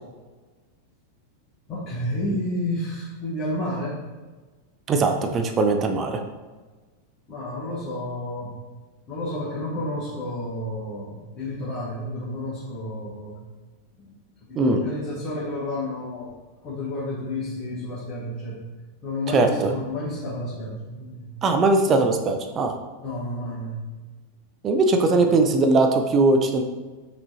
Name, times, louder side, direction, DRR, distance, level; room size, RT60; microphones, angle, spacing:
voice 1, 1.7-4.0 7.3-8.6 9.1-13.4 14.0-14.2 14.5-16.3 16.6-18.6 19.0-21.4 23.0-23.9 25.2-25.4, left 1 dB, 30° left, -8 dB, 1.2 m, -31 dB
voice 2, 4.9-6.2 14.6-14.8 19.3-19.7 21.4-22.7 24.6-26.6, right 3 dB, 25° right, 5 dB, 0.5 m, -20 dB
5.9 x 3.1 x 2.7 m, 1.3 s
figure-of-eight pair, 90°, 0 cm